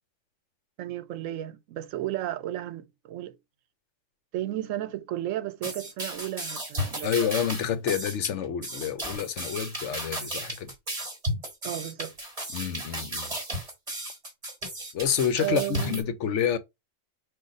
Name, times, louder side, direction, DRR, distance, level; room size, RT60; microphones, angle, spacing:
voice 1, 0.8-3.4 4.3-7.1 11.6-12.1 15.4-16.0, right 13 dB, 85° right, 1.0 m, -33 dB
sound 1, 5.6-16.0, right 1 dB, 30° right, 1.5 m, -34 dB
voice 2, 7.0-10.7 12.5-13.4 14.9-16.6, left 8 dB, 70° left, 1.0 m, -28 dB
4.0 x 2.6 x 4.7 m
omnidirectional pair, 1.3 m